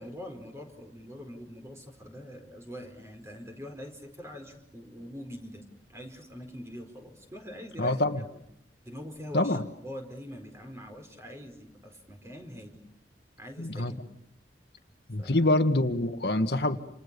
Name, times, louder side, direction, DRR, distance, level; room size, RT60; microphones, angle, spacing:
voice 1, 0.0-5.6 5.9-8.0 8.8-12.8 13.4-14.0 15.2-15.5, equal, 15° right, 5 dB, 4.9 m, -44 dB
voice 2, 7.8-8.2 9.3-9.6 13.6-13.9 15.1-16.8, left 1 dB, 65° left, 7 dB, 1.8 m, -25 dB
28.5 x 28.5 x 7.0 m, 0.71 s
head